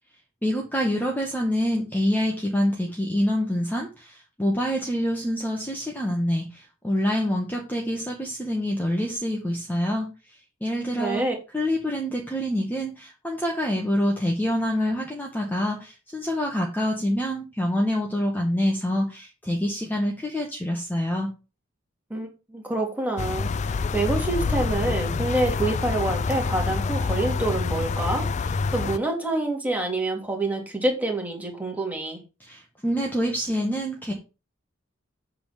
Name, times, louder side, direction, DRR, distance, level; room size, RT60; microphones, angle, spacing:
voice 1, 0.4-10.1 10.6-11.2 11.5-21.3 32.4-34.1, equal, 10° left, 0 dB, 1.3 m, -26 dB
voice 2, 11.0-11.3 22.1-32.2, right 2 dB, 10° right, 1 dB, 2.3 m, -27 dB
sound 1, 23.2-29.0, left 4 dB, 35° left, 0.3 m, -26 dB
8.2 x 3.8 x 6.5 m, 0.31 s
head